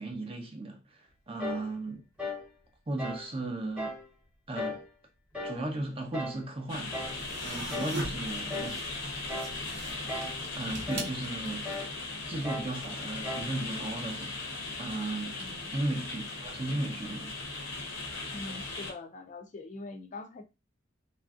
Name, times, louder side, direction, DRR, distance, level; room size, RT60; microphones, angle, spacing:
voice 1, 0.0-2.0 2.9-3.9 4.5-4.8 5.4-7.0 7.4-9.0 10.6-11.7 12.3-14.5 14.8-15.4 15.7-17.3, right 2 dB, 30° right, 0.6 m, -36 dB
sound 1, 1.4-1.7 2.2-2.5 3.0-3.3 3.8-4.1 4.6-4.9 5.3-5.7 6.1-6.4 6.9-7.2 7.7-8.0 8.5-8.8 9.3-9.6 10.1-10.4 10.9-11.1 11.6-11.9 12.4-12.8 13.2-13.5, left 1 dB, 5° right, 0.9 m, -37 dB
sound 2, 6.7-18.9, left 3 dB, 70° left, 0.7 m, -38 dB
sound 3, 7.0-11.8, right 2 dB, 60° right, 0.8 m, -42 dB
voice 2, 10.9-11.2 15.4-15.7 18.3-20.4, left 2 dB, 40° left, 0.4 m, -44 dB
3.3 x 2.5 x 2.4 m
head